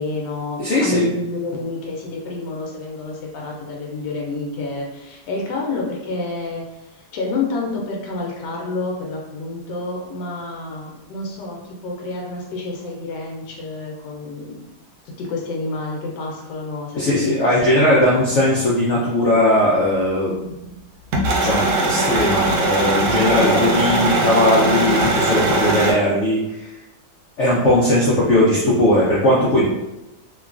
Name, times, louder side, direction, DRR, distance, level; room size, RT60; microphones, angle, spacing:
voice 1, 0.0-14.7 15.0-17.9 23.3-23.9, left 3 dB, 85° left, -1 dB, 1.2 m, -29 dB
voice 2, 0.6-1.1 16.9-20.6 21.4-26.7 27.4-29.6, left 1 dB, 70° left, -6 dB, 0.6 m, -18 dB
sound 1, 21.1-25.9, right 2 dB, 85° right, 1.2 m, -20 dB
3.1 x 2.2 x 2.4 m, 0.93 s
omnidirectional pair, 1.8 m